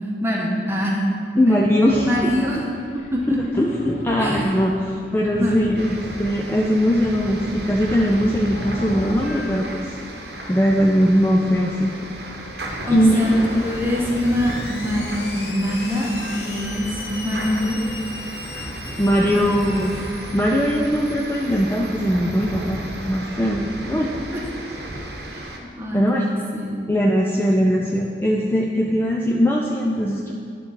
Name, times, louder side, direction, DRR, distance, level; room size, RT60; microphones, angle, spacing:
voice 1, 0.2-1.0 2.0-3.4 4.2-4.4 5.3-5.7 12.9-13.3 13.6-17.8 19.2-19.6 24.3-24.4 25.4-25.5 25.8-26.8, left 1 dB, 15° right, -3 dB, 1.0 m, -24 dB
voice 2, 1.4-2.3 3.3-10.0 10.5-11.9 12.9-13.4 18.9-19.9 20.3-22.8 23.0-24.1 25.9-26.3 26.9-30.3, equal, 10° left, -2 dB, 0.4 m, -20 dB
sound 1, 1.9-9.6, left 2 dB, 40° left, 0.7 m, -36 dB
sound 2, 5.8-25.6, right 1 dB, 65° right, 0.9 m, -34 dB
Screech, 12.7-23.1, left 2 dB, 70° left, 1.1 m, -37 dB
10.5 x 3.8 x 5.6 m, 2.3 s
head